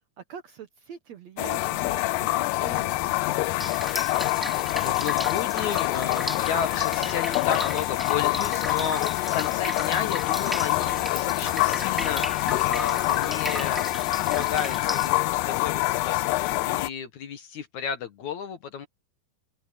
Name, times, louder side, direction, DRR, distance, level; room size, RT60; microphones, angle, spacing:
voice 1, 0.2-3.5, right 7 dB, 60° right, 2.0 m, -43 dB
sound 1, 1.4-16.9, left 19 dB, 80° left, 2.2 m, -26 dB
Drip, 3.6-15.1, equal, ahead, 1.4 m, -36 dB
voice 2, 4.8-13.8 14.3-18.9, left 7 dB, 60° left, 2.4 m, -33 dB
open air
omnidirectional pair, 4.3 m